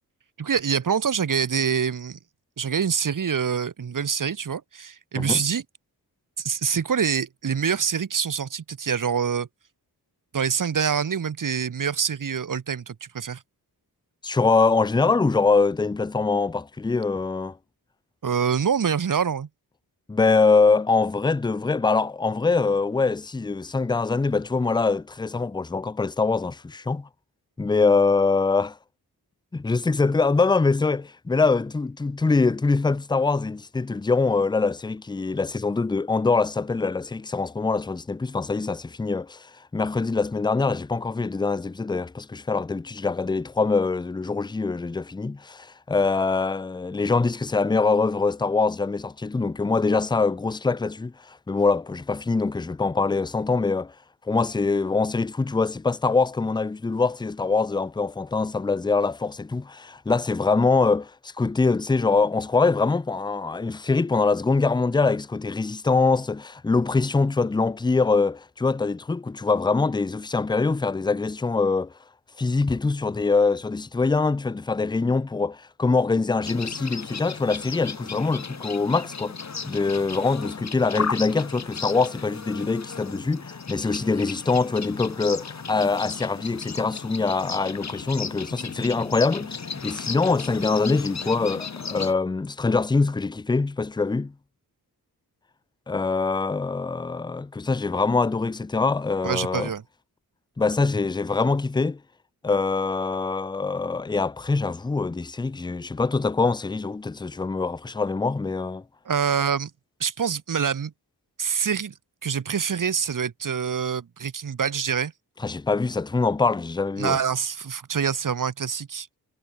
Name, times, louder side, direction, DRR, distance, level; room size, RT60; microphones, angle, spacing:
voice 1, 0.4-2.2 2.6-5.6 6.4-9.5 10.3-13.4 18.2-19.5 99.2-99.8 109.0-109.7 110.0-110.9 111.4-111.9 112.2-115.1 117.0-119.1, right 7 dB, 55° right, 1.2 m, -25 dB
voice 2, 14.2-17.6 20.1-27.1 27.6-28.8 29.5-39.5 39.7-53.9 54.3-71.9 72.4-79.4 79.6-94.3 95.9-99.7 100.6-102.0 102.4-108.8 115.4-117.2, left 4 dB, 10° left, 0.4 m, -24 dB
sound 1, 76.4-92.1, left 5 dB, 45° left, 1.9 m, -35 dB
wide cardioid pair, 95°, 39 cm